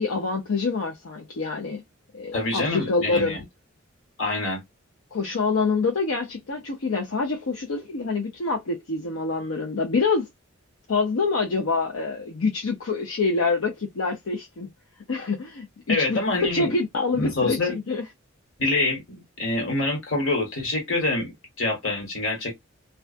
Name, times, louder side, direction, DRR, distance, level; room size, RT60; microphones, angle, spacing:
voice 1, 0.0-1.8 2.1-3.4 5.1-10.3 10.9-14.7 15.1-18.0, left 4 dB, 85° left, 0.6 m, -26 dB
voice 2, 2.3-3.4 4.2-4.6 15.9-16.7 17.1-17.8 18.6-22.6, left 2 dB, 70° left, 1.4 m, -26 dB
2.4 x 2.3 x 2.4 m
head